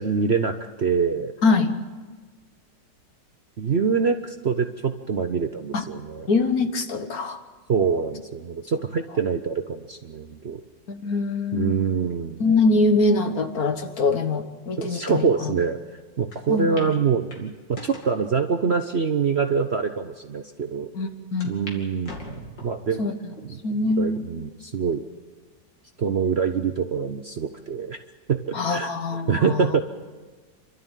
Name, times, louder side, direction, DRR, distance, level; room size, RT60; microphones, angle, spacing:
voice 1, 0.0-1.3 3.6-6.3 7.7-10.6 11.5-12.4 14.8-15.8 16.2-20.9 21.4-23.0 23.5-23.6 24.0-25.0 26.0-28.0 28.3-28.9 29.3-29.8, right 5 dB, 50° right, 6 dB, 0.9 m, -25 dB
voice 2, 1.4-1.8 5.7-5.8 6.3-7.4 10.9-11.8 12.4-15.5 16.5-16.9 20.9-21.5 23.0-23.1 23.6-24.2 28.5-29.7, left 3 dB, 55° left, 7 dB, 1.7 m, -23 dB
sound 1, 16.3-16.4 16.8-16.9 17.3-18.2 18.9-19.0 19.7-19.8 20.0-20.1 21.4-21.8 22.0-22.8 23.4-23.8 24.4-24.5 25.6-26.0, left 3 dB, 80° left, 3.3 m, -41 dB
28.5 x 12.5 x 9.1 m, 1.4 s
omnidirectional pair, 1.9 m